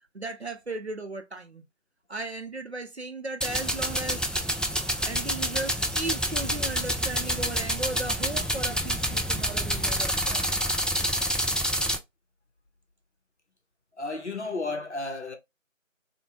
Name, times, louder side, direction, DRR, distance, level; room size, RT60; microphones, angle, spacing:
voice 1, 0.1-1.6 2.1-4.4 5.0-10.5, right 2 dB, 55° right, 0.5 m, -36 dB
sound 1, 3.4-12.0, equal, ahead, 0.3 m, -28 dB
voice 2, 14.0-15.4, left 3 dB, 60° left, 0.7 m, -32 dB
3.0 x 2.1 x 2.7 m
figure-of-eight pair, 180°, 40 cm